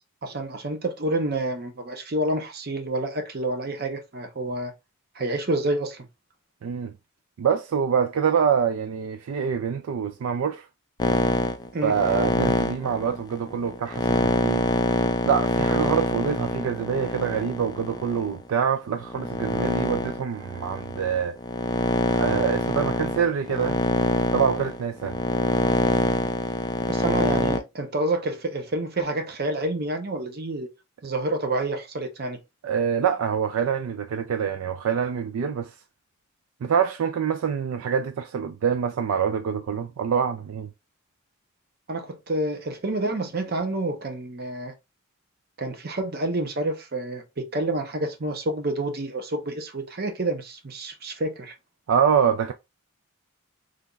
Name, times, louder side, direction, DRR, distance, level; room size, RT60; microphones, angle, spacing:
voice 1, 0.2-4.7 5.1-6.1 11.7-12.0 26.9-30.7 31.0-32.4 41.9-44.7 45.6-51.5, right 2 dB, 45° right, 0.7 m, -28 dB
voice 2, 6.6-6.9 7.4-10.7 11.8-14.7 15.2-21.4 22.2-23.8 24.3-25.2 32.6-35.7 36.6-40.7 51.9-52.5, right 7 dB, 70° right, 0.3 m, -25 dB
sound 1, 11.0-18.4 19.0-27.6, left 2 dB, 20° left, 0.3 m, -25 dB
3.3 x 2.3 x 3.8 m
head